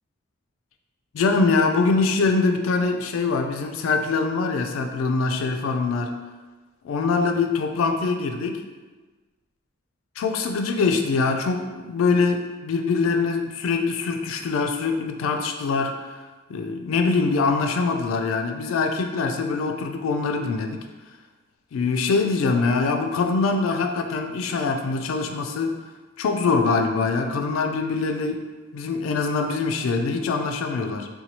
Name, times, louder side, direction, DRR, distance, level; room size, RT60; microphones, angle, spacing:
voice 1, 1.1-6.1 6.8-8.6 10.2-16.2 16.5-20.8 21.7-25.8 26.2-28.4 28.7-31.1, left 4 dB, 80° left, 4 dB, 0.3 m, -23 dB
2.9 x 2.2 x 2.7 m, 1.3 s
head